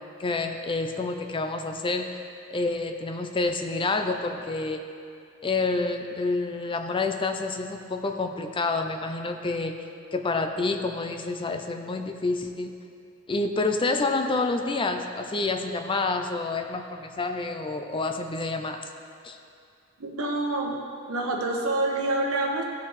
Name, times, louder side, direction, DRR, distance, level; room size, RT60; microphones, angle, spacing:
voice 1, 0.0-2.1 2.5-4.8 5.4-9.7 10.1-12.7 13.3-18.8 19.2-19.4, left 3 dB, 25° left, 5 dB, 0.5 m, -28 dB
voice 2, 20.0-20.8 21.1-22.6, right 2 dB, 75° right, 1 dB, 1.2 m, -27 dB
15.5 x 5.8 x 3.3 m, 2.4 s
head